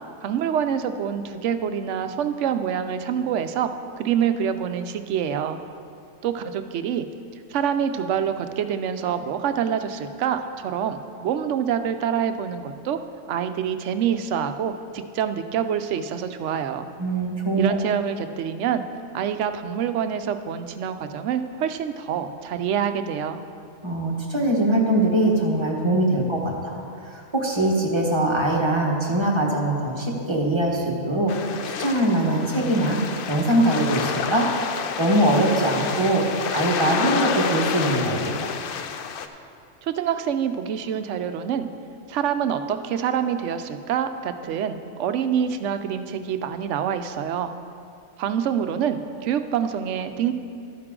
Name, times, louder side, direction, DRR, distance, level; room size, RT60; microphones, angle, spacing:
voice 1, 0.2-3.7 4.0-5.6 6.2-7.1 7.5-13.0 13.3-16.9 17.6-18.8 19.1-23.4 39.8-41.7 42.1-47.5 48.2-50.3, right 8 dB, 75° right, 9 dB, 0.9 m, -26 dB
voice 2, 17.0-17.7 23.8-33.0 33.3-34.5 35.0-36.2 36.5-38.3, right 1 dB, 20° right, -2 dB, 1.4 m, -22 dB
sound 1, 31.3-39.3, left 7 dB, 60° left, 0.6 m, -29 dB
12.0 x 9.5 x 3.7 m, 2.4 s
omnidirectional pair, 1.3 m